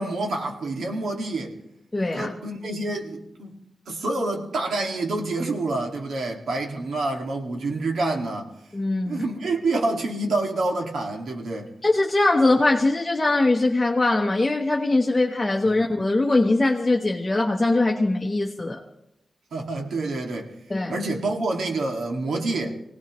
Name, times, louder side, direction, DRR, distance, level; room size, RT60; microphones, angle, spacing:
voice 1, 0.0-1.5 2.1-3.5 3.9-8.5 9.1-11.7 15.7-15.8 19.5-20.5 20.9-22.8, right 2 dB, 85° right, 2.0 m, -27 dB
voice 2, 1.9-2.3 8.7-9.2 11.8-18.8 20.7-21.0, left 2 dB, 15° left, 0.9 m, -21 dB
26.0 x 18.0 x 3.1 m
wide cardioid pair, 180°, 0 cm